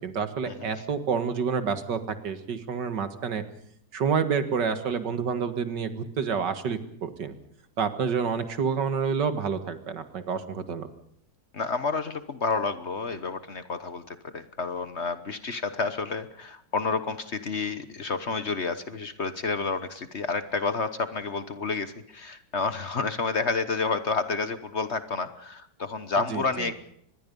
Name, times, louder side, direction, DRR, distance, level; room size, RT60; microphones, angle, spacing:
voice 1, 0.0-3.4 3.9-7.3 7.8-10.9 26.3-26.7, right 6 dB, 80° right, 10 dB, 2.3 m, -28 dB
voice 2, 11.5-26.8, left 4 dB, 45° left, 11 dB, 1.3 m, -30 dB
25.0 x 21.0 x 5.4 m, 0.69 s
omnidirectional pair, 1.9 m